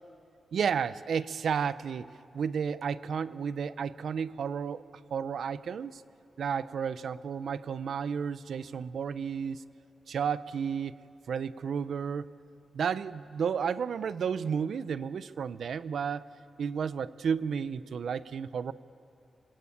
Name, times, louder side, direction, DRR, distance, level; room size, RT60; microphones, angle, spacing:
voice 1, 0.5-2.1 2.3-4.8 5.1-6.0 6.4-9.6 10.1-10.9 11.3-12.3 12.7-16.2 16.6-18.7, right 7 dB, 70° right, 15 dB, 0.6 m, -32 dB
26.0 x 22.5 x 8.6 m, 2.7 s
wide cardioid pair, 135°, 0 cm